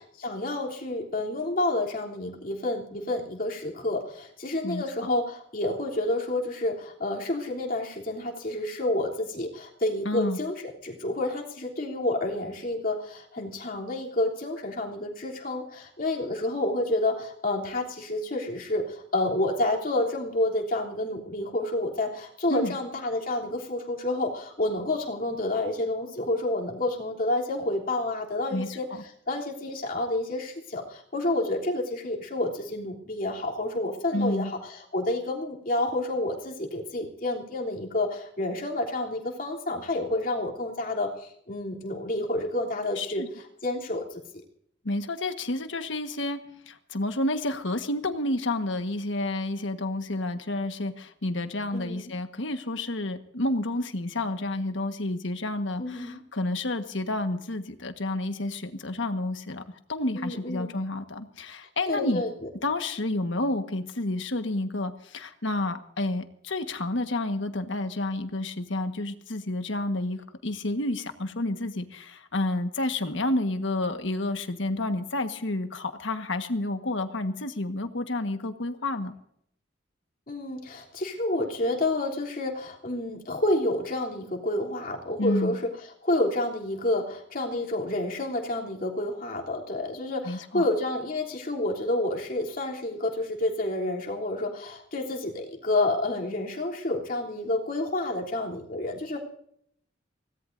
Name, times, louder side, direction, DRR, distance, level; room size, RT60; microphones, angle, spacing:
voice 1, 0.2-10.5 10.8-28.9 29.3-43.2 43.6-44.2 51.7-52.1 55.8-56.2 60.1-60.7 61.9-62.5 80.3-85.7 86.0-99.2, left 2 dB, 50° left, -2 dB, 3.3 m, -29 dB
voice 2, 4.6-5.1 10.0-10.4 22.5-22.8 28.5-29.0 34.1-34.5 43.0-43.3 44.8-59.6 59.9-62.2 62.6-79.1 85.2-85.6 90.2-90.7, left 2 dB, 80° left, 7 dB, 1.5 m, -30 dB
25.0 x 18.0 x 2.7 m, 0.69 s
head